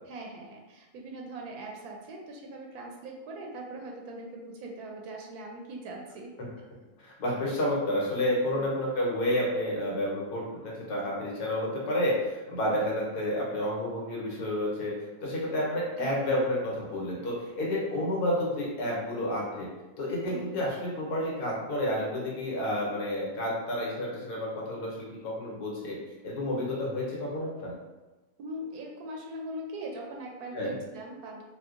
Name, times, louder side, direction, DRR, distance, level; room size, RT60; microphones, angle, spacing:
voice 1, 0.0-6.3 8.5-8.7 11.1-11.4 16.0-16.2 20.3-20.5 28.4-31.4, right 1 dB, 85° right, 0 dB, 1.1 m, -41 dB
voice 2, 7.0-14.9 15.2-19.7 20.0-26.0 26.2-27.8 30.5-30.8, left 1 dB, 90° left, -4 dB, 1.5 m, -30 dB
4.3 x 2.2 x 2.5 m, 1.1 s
omnidirectional pair, 1.6 m